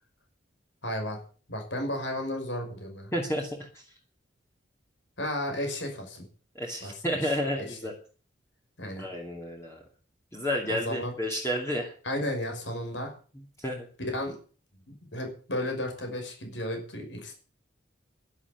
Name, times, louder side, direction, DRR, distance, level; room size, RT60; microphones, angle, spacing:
voice 1, 0.8-1.2 1.5-3.1 5.2-6.3 6.8-6.9 7.2-7.3 8.8-9.1 10.7-11.1 12.0-13.1 14.0-14.4 14.9-17.3, left 1 dB, 70° left, 3 dB, 5.9 m, -33 dB
voice 2, 3.1-3.9 6.5-7.9 9.0-9.8 10.3-11.9 13.6-13.9, equal, 15° left, -1 dB, 2.5 m, -31 dB
11.5 x 11.0 x 8.2 m, 0.41 s
head